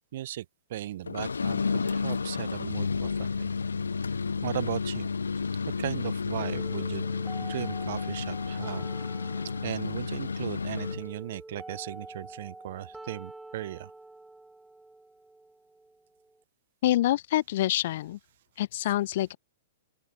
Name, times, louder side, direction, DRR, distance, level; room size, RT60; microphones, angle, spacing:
voice 1, 0.1-0.4 0.7-3.5 4.4-5.1 5.8-7.0 7.4-8.8 9.6-13.9, right 13 dB, 50° right, 1.0 m, -37 dB
sound 1, 1.1-11.1, left 5 dB, 70° left, 0.4 m, -31 dB
sound 2, 6.4-16.4, right 2 dB, 5° right, 4.4 m, -47 dB
voice 2, 16.8-18.2 18.6-19.4, left 14 dB, 50° left, 1.1 m, -26 dB
open air
figure-of-eight pair, 105°, 0 cm